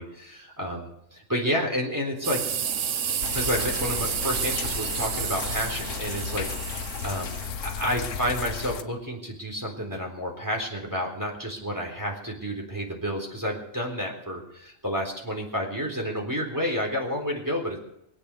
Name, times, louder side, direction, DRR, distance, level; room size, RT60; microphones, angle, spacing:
voice 1, 0.0-2.4 3.3-7.3 7.6-17.8, equal, 15° right, -1 dB, 3.8 m, -30 dB
sound 1, 2.2-7.5, right 8 dB, 70° right, 1.2 m, -31 dB
sound 2, 3.2-8.8, left 6 dB, 75° left, 1.3 m, -34 dB
23.5 x 8.6 x 7.0 m, 0.79 s
omnidirectional pair, 1.3 m